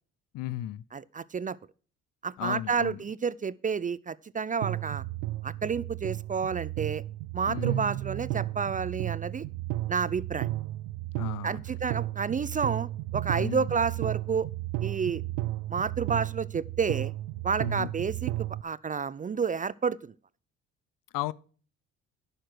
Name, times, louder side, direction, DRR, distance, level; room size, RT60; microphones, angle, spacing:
voice 1, 0.3-0.8 2.4-3.0 7.5-7.9 11.2-11.6 13.3-13.7 17.6-17.9 21.1-21.3, left 14 dB, 65° left, 0.6 m, -35 dB
voice 2, 0.9-1.6 2.2-5.0 5.4-7.0 7.3-9.5 9.9-10.5 11.4-14.5 14.8-15.2 15.7-17.1 17.4-20.0, right 6 dB, 25° right, 0.4 m, -30 dB
sound 1, 4.6-18.6, right 16 dB, 80° right, 0.5 m, -33 dB
10.5 x 6.7 x 6.0 m
hypercardioid pair, 60°, 34 cm